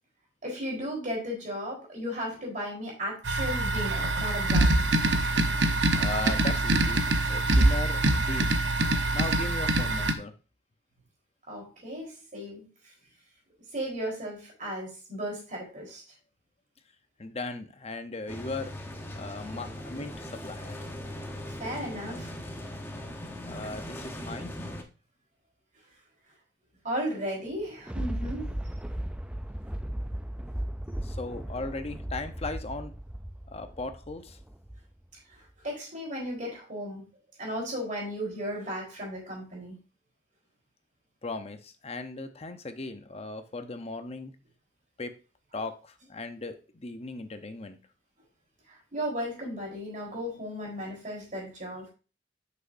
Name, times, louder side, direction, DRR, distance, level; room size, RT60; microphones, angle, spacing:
voice 1, 0.4-4.9 11.5-12.7 13.7-16.0 21.6-22.3 26.8-28.5 35.6-37.1 37.4-39.8 48.9-51.9, equal, 45° right, -2 dB, 3.9 m, -35 dB
sound 1, 3.2-10.1, right 2 dB, 85° right, 0.9 m, -24 dB
voice 2, 5.9-8.6 9.1-10.3 17.2-18.7 19.1-20.7 23.5-24.5 31.0-32.9 33.5-34.4 41.2-44.3 45.0-45.1 45.5-47.8, left 3 dB, 35° left, 8 dB, 0.8 m, -37 dB
sound 2, 18.3-24.8, left 1 dB, 15° left, 1.0 m, -39 dB
Thunder, 27.4-35.0 35.5-35.6, right 1 dB, 5° right, 0.4 m, -36 dB
8.3 x 6.3 x 2.6 m, 0.34 s
head